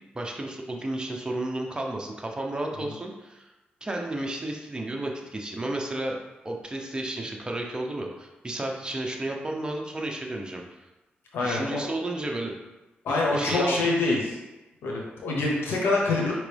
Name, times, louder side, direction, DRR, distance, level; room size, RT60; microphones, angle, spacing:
voice 1, 0.1-3.5 3.8-6.2 6.4-10.9 11.4-12.5 13.1-13.8, right 1 dB, 25° right, 1 dB, 0.8 m, -32 dB
voice 2, 11.3-11.9 13.0-14.4 14.8-16.3, left 2 dB, 85° left, -2 dB, 0.9 m, -25 dB
4.9 x 3.0 x 3.4 m, 1.1 s
cardioid pair, 70°, 4 cm